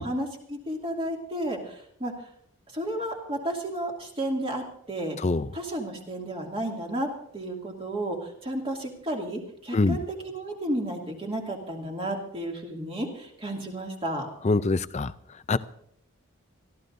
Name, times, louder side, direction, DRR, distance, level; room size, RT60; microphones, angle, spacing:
voice 1, 0.0-2.3 2.7-5.2 5.5-14.3, right 1 dB, 25° right, 0 dB, 2.6 m, -32 dB
voice 2, 5.2-5.5 9.7-10.0 14.4-15.1 15.5-15.6, left 3 dB, 30° left, 14 dB, 0.5 m, -24 dB
24.5 x 14.0 x 2.7 m, 0.69 s
head